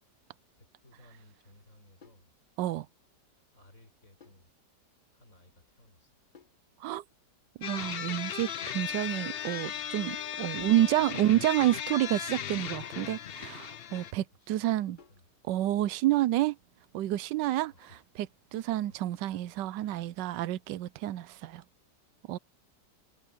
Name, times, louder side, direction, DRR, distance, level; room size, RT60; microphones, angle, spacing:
voice 1, 0.6-2.3 3.5-4.5 5.1-6.1 10.4-11.0 13.9-15.2 17.6-18.0 18.3-19.4 19.8-20.4, left 1 dB, 45° left, 6.4 m, -60 dB
sound 1, 2.0-2.3 4.2-4.5 6.3-6.6 8.5-8.9 10.7-11.0 12.8-13.1 15.0-15.3 17.1-17.4, left 5 dB, 30° left, 1.6 m, -58 dB
sound 2, 7.6-14.1, left 9 dB, 80° left, 0.5 m, -37 dB
voice 2, 7.6-15.0 15.5-16.6 16.9-17.7 18.5-21.6 22.3-22.4, right 14 dB, 85° right, 1.2 m, -29 dB
omnidirectional pair, 1.9 m